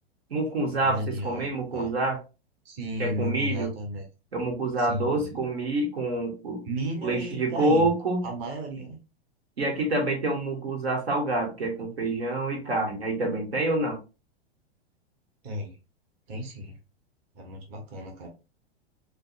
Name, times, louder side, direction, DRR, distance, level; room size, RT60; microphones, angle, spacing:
voice 1, 0.3-2.2 3.0-3.7 4.3-6.6 7.0-8.2 9.6-14.0, right 2 dB, 75° right, 1 dB, 1.7 m, -27 dB
voice 2, 0.8-1.9 2.6-4.0 4.8-5.4 6.6-7.9 8.2-9.0 15.4-15.8 16.3-16.8 17.3-18.3, right 1 dB, 40° right, 2 dB, 1.4 m, -34 dB
6.5 x 2.3 x 2.5 m, 0.29 s
hypercardioid pair, 105°, 32 cm